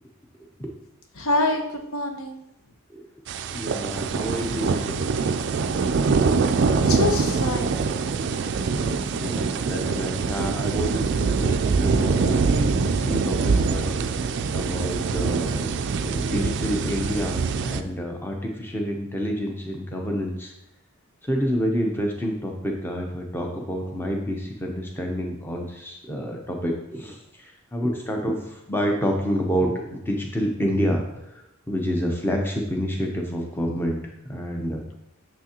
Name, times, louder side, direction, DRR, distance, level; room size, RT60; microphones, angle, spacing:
voice 1, 1.1-2.4 6.9-7.8, left 2 dB, 75° left, 4 dB, 0.9 m, -26 dB
sound 1, 3.3-17.8, right 4 dB, 55° right, 0.3 m, -24 dB
voice 2, 3.5-5.0 8.8-20.5 21.2-34.0 34.3-34.8, equal, 10° left, 1 dB, 0.7 m, -28 dB
6.6 x 6.1 x 2.9 m, 0.82 s
head